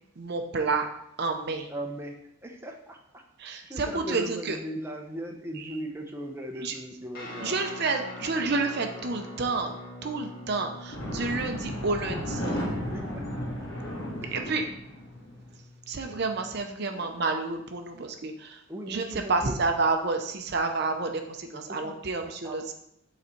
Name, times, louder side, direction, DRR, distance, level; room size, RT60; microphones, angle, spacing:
voice 1, 0.2-0.9 1.2-1.7 3.4-4.6 6.6-6.7 7.4-9.7 10.0-12.6 14.3-14.6 15.9-22.7, right 3 dB, 50° right, 5 dB, 0.6 m, -29 dB
voice 2, 1.7-3.2 3.6-7.6 12.1-12.2 12.9-13.9 14.2-14.6 16.0-16.2 18.7-19.6 21.5-21.9 22.4-22.6, right 1 dB, 10° right, 1 dB, 0.7 m, -39 dB
Guitar, 7.1-16.5, left 1 dB, 45° left, 1.6 m, -44 dB
sound 1, 10.9-15.4, equal, 65° left, 1.7 m, -34 dB
7.8 x 4.1 x 4.4 m, 0.78 s
head